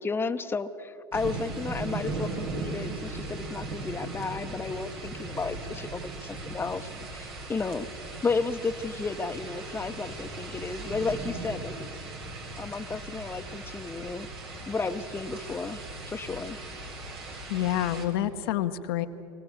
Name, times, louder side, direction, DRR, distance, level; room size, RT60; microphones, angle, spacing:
voice 1, 0.0-7.9 8.2-11.7 12.6-14.3 14.7-16.6, left 4 dB, 20° left, 9 dB, 0.8 m, -33 dB
sound 1, 1.1-18.1, right 2 dB, 85° right, 3.3 m, -38 dB
voice 2, 17.5-19.1, left 12 dB, 75° left, 7 dB, 1.0 m, -28 dB
23.5 x 17.0 x 7.3 m, 2.9 s
hypercardioid pair, 85°, 12 cm